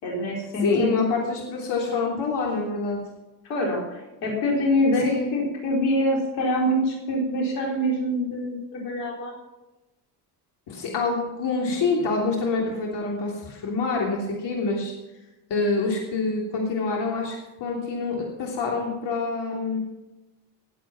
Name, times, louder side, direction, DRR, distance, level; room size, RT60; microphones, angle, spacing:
voice 1, 0.0-0.9 3.4-9.3, equal, 80° left, -2 dB, 4.5 m, -25 dB
voice 2, 0.6-3.0 4.9-5.3 10.7-14.9 15.5-19.8, left 3 dB, 55° left, -1 dB, 3.2 m, -26 dB
18.0 x 8.4 x 5.9 m, 1.0 s
hypercardioid pair, 60°, 48 cm